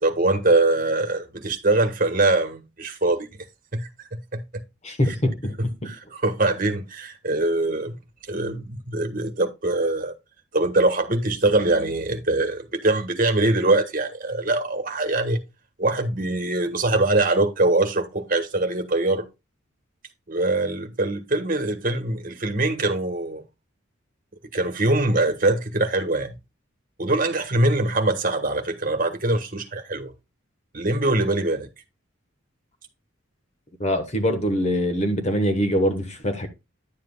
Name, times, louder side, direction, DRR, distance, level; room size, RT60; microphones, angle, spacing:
voice 1, 0.0-3.3 3.7-4.4 5.1-5.2 5.6-8.0 8.3-10.1 10.5-15.4 15.8-19.2 20.3-23.4 24.5-26.3 27.0-30.1 30.7-31.7, right 2 dB, 45° right, 1.4 m, -23 dB
voice 2, 4.8-5.5 5.8-5.9 33.8-36.5, equal, 35° left, 1.2 m, -23 dB
10.5 x 7.6 x 2.3 m
head